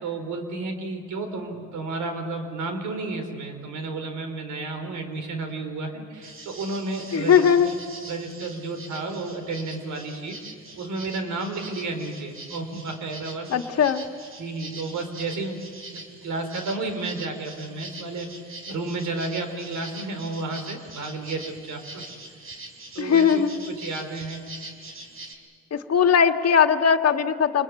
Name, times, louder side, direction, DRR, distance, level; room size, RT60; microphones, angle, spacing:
voice 1, 0.0-7.8 8.1-10.4 10.8-13.5 14.4-22.0 22.9-24.5, right 3 dB, 75° right, 6 dB, 4.6 m, -32 dB
sound 1, 6.2-25.4, right 2 dB, 45° right, 4.5 m, -43 dB
voice 2, 7.1-7.7 13.5-14.1 23.0-23.6 25.7-27.6, left 7 dB, 55° left, 6 dB, 1.8 m, -19 dB
27.5 x 21.5 x 8.6 m, 2.3 s
cardioid pair, 90°, 30 cm